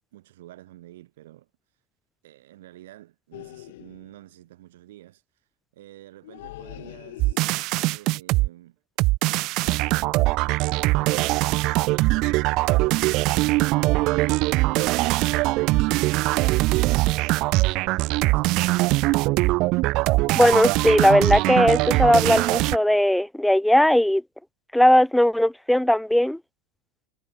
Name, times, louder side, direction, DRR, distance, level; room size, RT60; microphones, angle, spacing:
voice 1, 0.1-1.5 2.2-5.2 5.7-7.4 7.9-8.8 10.4-13.7 14.3-19.3, right 15 dB, 75° right, 5.6 m, -48 dB
sound 1, 3.3-4.2 6.2-7.8 9.5-9.8 10.2-10.5 10.9-11.1, left 18 dB, 65° left, 1.7 m, -44 dB
sound 2, 7.2-8.5 9.0-22.8, right 22 dB, 45° right, 0.5 m, -22 dB
voice 2, 20.4-24.2 24.7-26.4, left 1 dB, ahead, 0.4 m, -18 dB
supercardioid pair, 130°, 0 cm